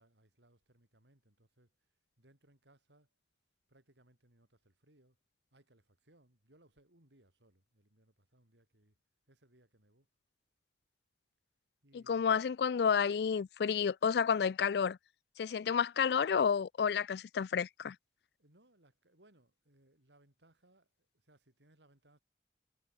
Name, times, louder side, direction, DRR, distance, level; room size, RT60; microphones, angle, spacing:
voice 1, 0.0-1.7 2.2-3.1 3.7-5.2 5.5-9.0 9.3-10.1 11.8-12.5 18.4-22.2, right 1 dB, 85° right, 5.2 m, -67 dB
voice 2, 11.9-15.0 15.4-18.0, left 6 dB, 70° left, 0.3 m, -30 dB
head